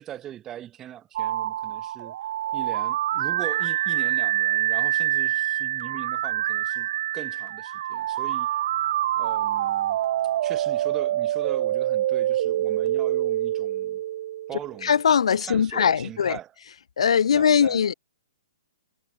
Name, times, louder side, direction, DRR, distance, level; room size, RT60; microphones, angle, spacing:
voice 1, 0.0-2.2 2.5-8.5 9.2-10.0 10.4-14.0 14.5-15.0 15.4-16.5 17.3-17.8, right 12 dB, 15° right, 4.2 m, -40 dB
sound 1, 1.2-15.0, right 12 dB, 35° right, 0.4 m, -26 dB
voice 2, 14.8-16.4 17.0-17.9, left 7 dB, 85° left, 0.5 m, -20 dB
hypercardioid pair, 175°, 3 cm